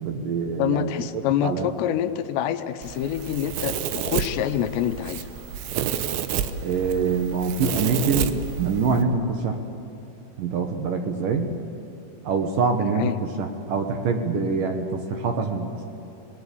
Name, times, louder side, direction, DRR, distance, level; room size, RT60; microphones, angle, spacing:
voice 1, 0.0-1.1 1.4-1.7 6.6-9.6 10.4-11.5 12.2-15.8, right 4 dB, 65° right, 4 dB, 2.5 m, -25 dB
voice 2, 0.6-5.3 12.8-13.2, left 10 dB, 80° left, 9 dB, 2.9 m, -26 dB
Domestic sounds home sounds, 2.8-9.0, right 9 dB, 85° right, 3.3 m, -30 dB
27.0 x 20.5 x 8.4 m, 2.9 s
omnidirectional pair, 5.1 m